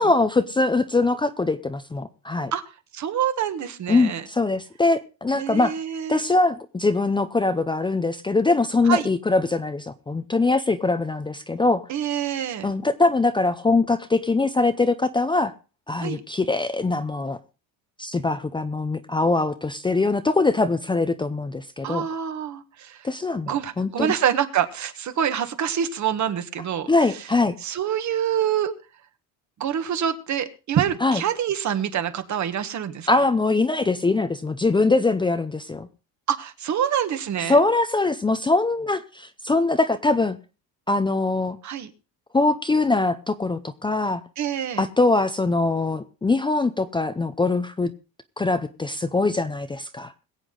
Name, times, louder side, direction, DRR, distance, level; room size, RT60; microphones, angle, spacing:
voice 1, 0.0-2.5 3.9-5.7 6.1-11.8 12.6-15.5 15.9-17.4 18.0-22.1 23.0-24.1 26.9-27.5 31.0-31.2 33.1-35.9 37.5-40.4 40.9-41.6 42.3-44.2 44.8-47.9 48.4-50.1, left 3 dB, 15° left, 0.6 m, -22 dB
voice 2, 2.9-4.2 5.3-6.2 8.8-9.1 11.9-12.7 16.0-16.2 21.8-23.1 23.5-27.3 27.6-28.7 29.6-33.1 36.3-37.6 41.6-41.9 44.4-44.9, right 9 dB, 45° right, 1.5 m, -26 dB
21.5 x 8.2 x 3.9 m
cardioid pair, 140°, 38 cm